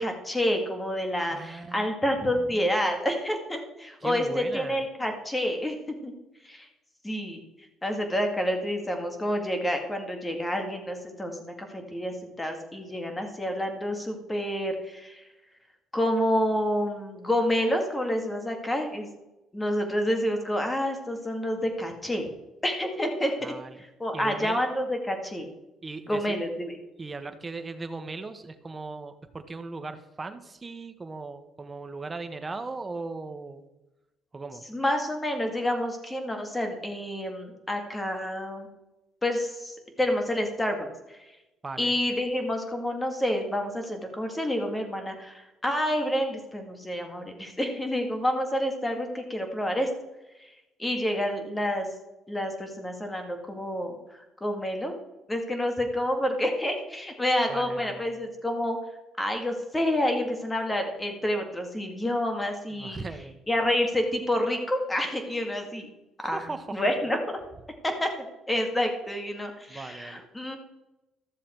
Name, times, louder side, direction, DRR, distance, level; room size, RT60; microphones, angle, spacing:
voice 1, 0.0-5.8 6.0-6.1 6.4-6.7 7.0-7.4 7.8-15.2 15.9-19.1 19.5-22.3 22.6-23.5 24.0-25.5 26.1-26.7 34.7-38.7 39.2-41.2 41.8-49.9 50.4-50.5 50.8-51.9 52.3-54.0 54.4-55.0 55.3-58.8 59.2-63.0 63.5-65.9 66.2-66.5 66.7-67.4 67.8-70.6, left 1 dB, 15° left, 4 dB, 2.1 m, -28 dB
voice 2, 1.2-2.7 4.0-4.9 23.4-23.8 24.1-24.6 25.8-26.3 27.0-33.6 34.3-34.6 41.6-42.0 57.5-58.0 62.7-63.4 66.2-66.8 69.7-70.2, right 3 dB, 20° right, 9 dB, 1.1 m, -38 dB
13.0 x 7.1 x 4.6 m, 0.98 s
cardioid pair, 105°, 0 cm